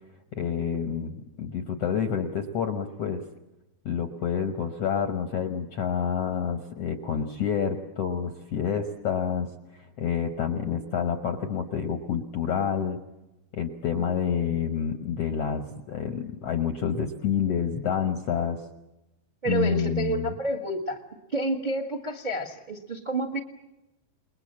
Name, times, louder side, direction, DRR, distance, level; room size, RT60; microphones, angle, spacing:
voice 1, 0.3-3.2 3.8-13.0 13.5-18.6 19.5-20.3, left 7 dB, 70° left, 7 dB, 1.5 m, -28 dB
voice 2, 19.4-21.0 21.3-23.4, right 2 dB, 50° right, 4 dB, 0.5 m, -29 dB
29.0 x 21.0 x 7.5 m, 0.95 s
omnidirectional pair, 4.4 m